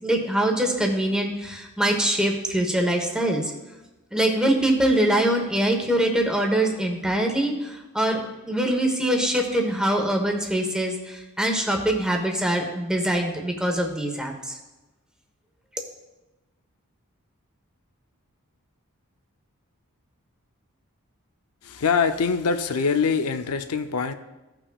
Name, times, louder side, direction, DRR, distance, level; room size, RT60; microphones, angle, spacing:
voice 1, 0.0-3.5 4.1-8.2 8.4-14.6, right 1 dB, 5° right, 2 dB, 1.1 m, -23 dB
voice 2, 21.6-24.1, left 5 dB, 80° left, 8 dB, 0.6 m, -24 dB
16.0 x 5.9 x 2.4 m, 1.1 s
head